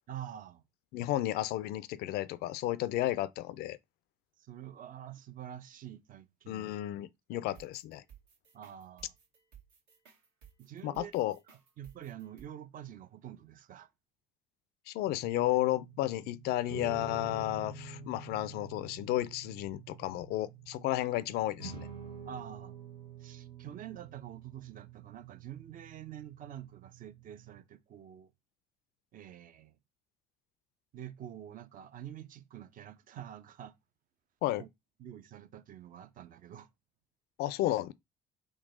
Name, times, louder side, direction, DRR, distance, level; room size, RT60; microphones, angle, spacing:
voice 1, 0.1-0.6 4.4-6.7 7.3-7.6 8.5-9.1 10.6-11.1 11.8-13.9 22.3-22.7 23.2-28.3 29.1-29.8 30.9-33.8 34.6-34.7 35.0-36.7, right 10 dB, 45° right, 0.6 m, -47 dB
voice 2, 0.9-3.8 6.5-8.0 10.8-11.3 14.9-21.9 34.4-34.6 37.4-37.9, left 15 dB, 55° left, 0.4 m, -32 dB
sound 1, 7.6-12.5, right 9 dB, 70° right, 1.2 m, -57 dB
sound 2, 15.0-27.6, right 5 dB, 90° right, 1.0 m, -48 dB
3.8 x 2.3 x 3.9 m
figure-of-eight pair, 55°, 20 cm